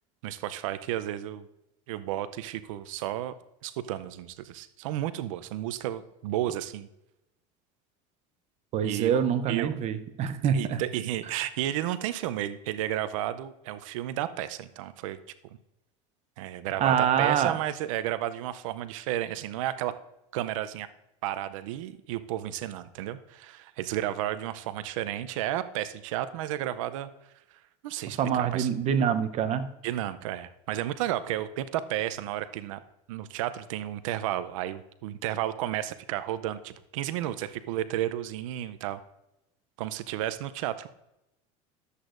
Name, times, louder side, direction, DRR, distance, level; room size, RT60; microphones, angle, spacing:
voice 1, 0.2-1.5 1.9-3.3 3.6-6.9 8.8-9.1 9.5-9.8 10.5-15.2 16.4-19.9 20.3-20.9 21.2-27.1 27.8-28.7 29.8-32.8 33.1-39.0 39.8-40.9, right 13 dB, 85° right, 13 dB, 0.6 m, -32 dB
voice 2, 8.7-10.8 16.8-17.6 28.2-29.7, right 8 dB, 45° right, 10 dB, 0.7 m, -25 dB
12.5 x 8.1 x 2.5 m, 0.88 s
supercardioid pair, 120°, 16 cm